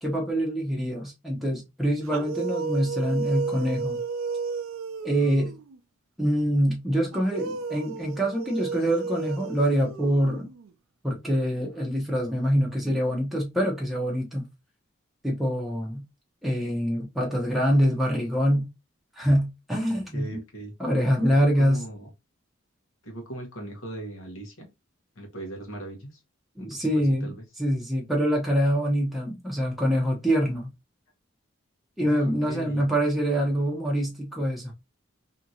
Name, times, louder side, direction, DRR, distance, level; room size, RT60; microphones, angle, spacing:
voice 1, 0.0-4.0 5.0-5.5 6.2-10.5 11.0-14.5 15.2-16.0 16.4-18.7 19.2-20.3 20.8-21.8 26.6-27.3 27.6-30.7 32.0-34.7, equal, ahead, 0.7 m, -25 dB
sound 1, 2.0-5.8 7.1-10.7, right 4 dB, 80° right, 0.4 m, -33 dB
voice 2, 19.8-20.7 21.3-22.1 23.0-24.7 25.1-26.2 26.6-26.9 27.2-27.5 32.0-32.8, right 1 dB, 85° left, 1.1 m, -39 dB
2.8 x 2.5 x 2.7 m
head